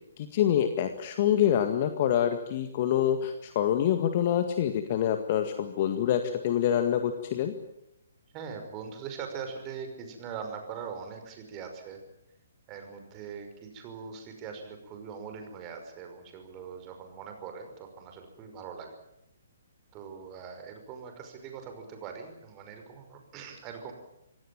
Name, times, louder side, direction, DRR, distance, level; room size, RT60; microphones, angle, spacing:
voice 1, 0.2-7.5, left 10 dB, 40° left, 7 dB, 1.9 m, -26 dB
voice 2, 8.3-12.0 12.7-19.0 19.9-23.9, right 6 dB, 25° right, 5 dB, 5.6 m, -42 dB
26.0 x 17.0 x 9.0 m, 0.82 s
figure-of-eight pair, 130°, 0 cm